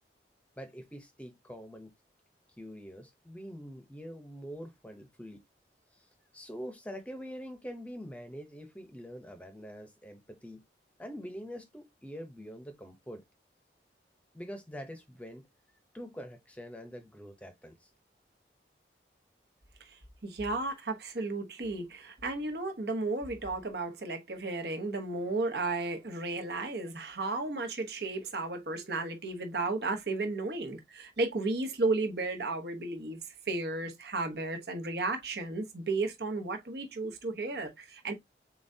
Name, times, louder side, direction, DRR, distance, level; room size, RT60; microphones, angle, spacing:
voice 1, 0.6-1.9 2.6-5.4 5.9-10.6 11.0-13.2 14.3-17.9, equal, 10° left, 0.7 m, -45 dB
voice 2, 20.2-33.2 33.5-38.1, right 3 dB, 70° right, 1.0 m, -33 dB
7.0 x 2.4 x 2.7 m
head